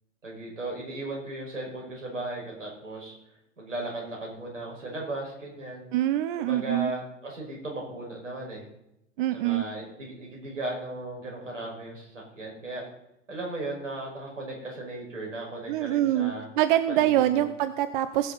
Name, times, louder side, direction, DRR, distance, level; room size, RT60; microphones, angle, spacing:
voice 1, 0.2-3.1 3.6-5.9 6.4-8.6 9.3-12.8 13.3-16.5 16.9-17.5, right 2 dB, 75° right, -1 dB, 5.5 m, -36 dB
voice 2, 5.9-6.9 9.2-9.6 15.7-18.3, right 13 dB, 40° right, 11 dB, 0.7 m, -25 dB
20.0 x 6.9 x 4.1 m, 0.83 s
figure-of-eight pair, 100°, 38 cm